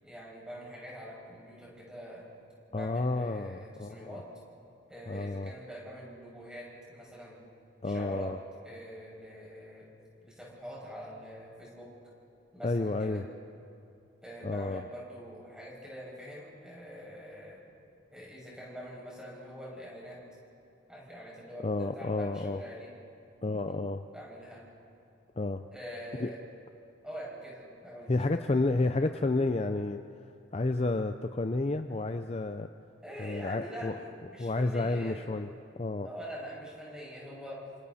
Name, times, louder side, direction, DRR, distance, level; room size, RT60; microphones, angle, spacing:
voice 1, 0.0-2.2 2.7-4.2 4.9-7.4 7.8-8.3 8.6-9.9 10.2-11.9 12.5-13.2 14.2-17.6 18.1-20.2 20.9-22.9 23.4-23.8 24.1-24.6 25.7-26.4 27.0-28.9 33.0-35.3 36.0-37.6, equal, 5° right, -5 dB, 6.5 m, -44 dB
voice 2, 2.7-4.2 5.1-5.5 7.8-8.4 12.6-13.2 14.4-14.8 21.6-22.6 23.4-24.1 25.4-25.6 26.2-26.3 28.1-30.0 30.5-32.7 33.2-33.9 34.4-35.5 35.8-36.1, left 2 dB, 30° left, 8 dB, 0.5 m, -30 dB
28.5 x 27.0 x 4.2 m, 2.7 s
head